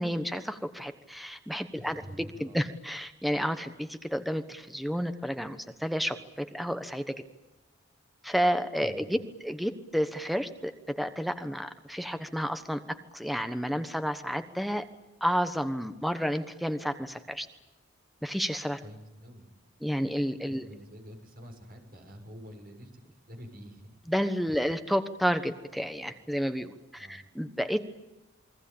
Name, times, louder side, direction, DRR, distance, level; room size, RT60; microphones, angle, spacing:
voice 1, 0.0-7.2 8.2-12.8 13.1-14.9 15.2-17.5 18.2-18.8 19.8-20.7 24.1-27.8, equal, ahead, 9 dB, 1.2 m, -31 dB
voice 2, 1.8-2.6 8.8-9.1 18.8-19.5 20.5-23.0 23.3-24.0 24.5-24.6 27.0-27.2, equal, 50° right, 4 dB, 6.7 m, -47 dB
28.5 x 22.0 x 8.7 m, 1.0 s
head